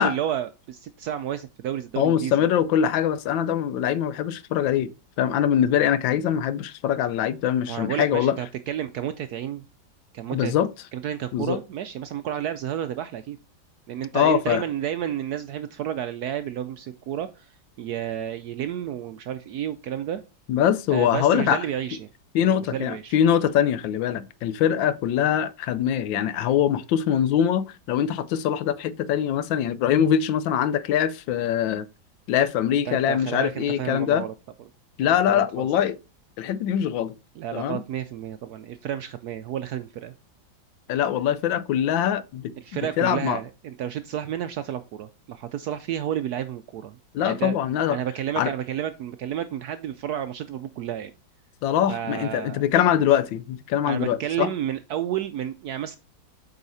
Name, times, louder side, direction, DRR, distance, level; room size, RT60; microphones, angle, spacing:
voice 1, 0.0-2.3 7.7-9.6 10.1-10.5 10.9-13.4 13.9-20.2 20.9-22.1 22.5-23.2 32.7-34.3 35.2-35.7 37.4-40.1 42.6-47.5 47.9-51.1 51.9-52.7 53.8-56.0, right 10 dB, 75° right, 0.9 m, -31 dB
voice 2, 2.0-4.9 5.2-8.4 10.3-10.7 11.3-11.6 14.1-14.6 20.5-21.7 22.3-31.9 32.3-34.2 35.0-36.0 36.4-37.1 37.5-37.8 40.9-43.4 47.1-48.0 48.4-48.5 51.6-54.5, left 9 dB, 80° left, 1.3 m, -23 dB
8.0 x 4.9 x 4.1 m
omnidirectional pair, 2.1 m